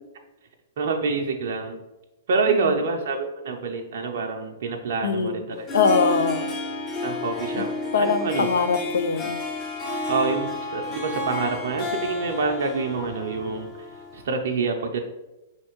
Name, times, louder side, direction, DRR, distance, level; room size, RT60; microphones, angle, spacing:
voice 1, 0.8-1.8 2.3-5.7 7.0-7.7 8.0-8.5 10.1-13.7 14.1-15.0, right 4 dB, 65° right, 3 dB, 0.4 m, -26 dB
voice 2, 5.0-5.4 5.7-6.5 7.6-7.7 7.9-9.4, left 5 dB, 80° left, 9 dB, 0.4 m, -22 dB
Harp, 5.5-14.2, left 3 dB, 25° left, 0.8 m, -31 dB
5.5 x 3.2 x 3.0 m, 1.0 s
hypercardioid pair, 120°, 0 cm